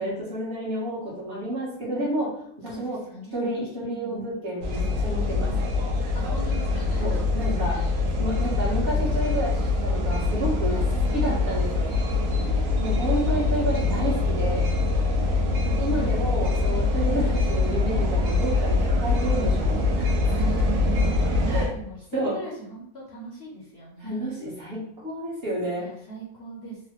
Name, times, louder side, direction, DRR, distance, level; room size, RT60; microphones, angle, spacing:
voice 1, 0.0-2.3 2.6-3.0 3.3-5.5 7.0-7.8 8.2-10.8 11.1-11.9 12.8-14.7 15.8-20.2 21.5-21.7 22.1-22.4 24.0-25.9, right 1 dB, 45° right, -7 dB, 1.3 m, -30 dB
voice 2, 2.7-4.2 5.2-5.7 6.1-7.2 7.7-8.0 8.4-8.7 10.7-11.4 12.4-13.0 15.1-16.1 20.2-24.3 25.8-26.8, right 3 dB, 55° left, -5 dB, 0.8 m, -40 dB
sound 1, 4.6-21.7, left 3 dB, 70° right, 1.0 m, -24 dB
3.2 x 2.1 x 2.9 m, 0.69 s
omnidirectional pair, 1.5 m